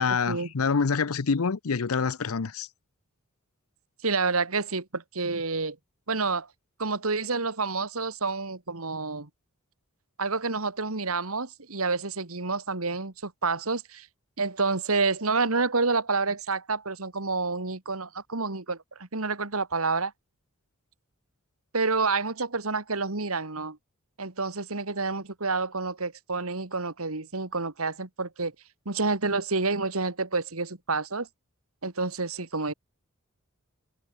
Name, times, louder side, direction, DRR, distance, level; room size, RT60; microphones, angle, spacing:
voice 1, 0.0-2.7, left 5 dB, 75° left, 0.7 m, -26 dB
voice 2, 4.0-5.8 6.1-6.5 6.8-9.3 10.2-14.1 14.4-20.1 21.7-23.8 24.2-28.5 28.9-31.3 31.8-32.7, right 4 dB, 70° right, 2.3 m, -28 dB
head